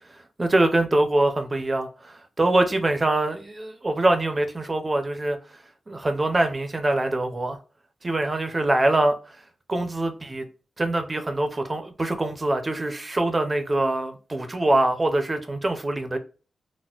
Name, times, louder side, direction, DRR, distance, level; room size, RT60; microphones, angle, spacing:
voice 1, 0.4-5.4 5.9-7.6 8.0-9.4 9.7-10.4 10.8-16.2, right 2 dB, 25° right, 0.5 m, -24 dB
4.1 x 2.1 x 2.3 m
wide cardioid pair, 140°, 0 cm